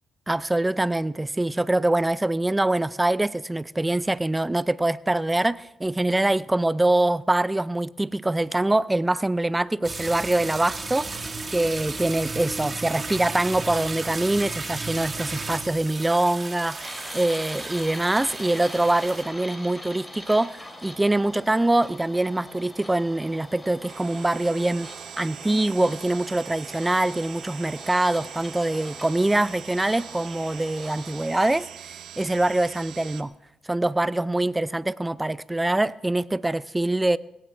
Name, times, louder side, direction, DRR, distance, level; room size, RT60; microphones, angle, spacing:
voice 1, 0.3-24.9 25.2-33.3 33.7-37.2, right 2 dB, 15° right, 0.4 m, -24 dB
sound 1, 9.8-19.2, right 3 dB, 30° right, 1.8 m, -34 dB
sound 2, 16.8-31.7, left 1 dB, 15° left, 2.8 m, -43 dB
sound 3, 23.9-33.2, right 10 dB, 70° right, 0.8 m, -42 dB
19.5 x 17.5 x 3.4 m
cardioid pair, 90°, 0 cm